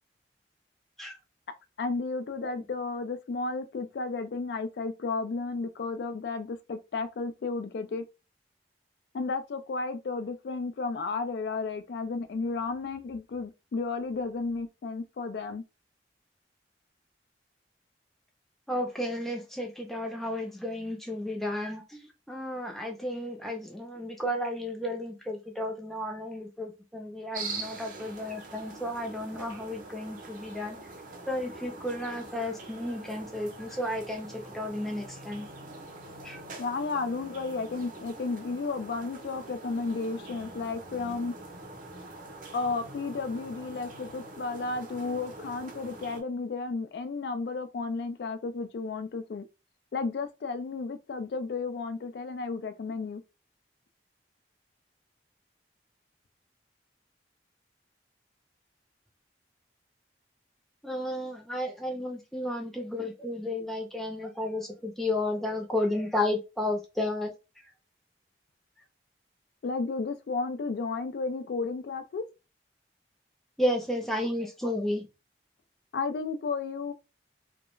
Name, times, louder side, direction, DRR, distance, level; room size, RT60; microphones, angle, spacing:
voice 1, 1.8-8.0 9.1-15.6 36.6-41.3 42.5-49.4 49.9-53.2 69.6-72.2 75.9-76.9, left 4 dB, 65° left, 0.3 m, -33 dB
voice 2, 18.7-22.0 22.3-30.8 31.3-35.5 36.2-36.4 60.8-67.3 73.6-75.1, left 1 dB, ahead, 0.5 m, -33 dB
sound 1, 27.3-46.2, right 2 dB, 45° right, 0.6 m, -44 dB
2.3 x 2.1 x 3.0 m
head